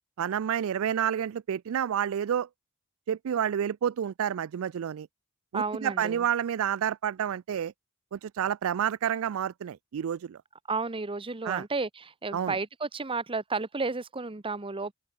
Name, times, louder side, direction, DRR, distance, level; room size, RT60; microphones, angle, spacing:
voice 1, 0.2-2.5 3.1-5.1 5.5-7.7 8.1-10.4 11.4-11.6 12.3-12.6, right 9 dB, 70° right, 0.4 m, -29 dB
voice 2, 5.5-6.3 10.7-14.9, right 3 dB, 25° right, 1.0 m, -32 dB
open air
head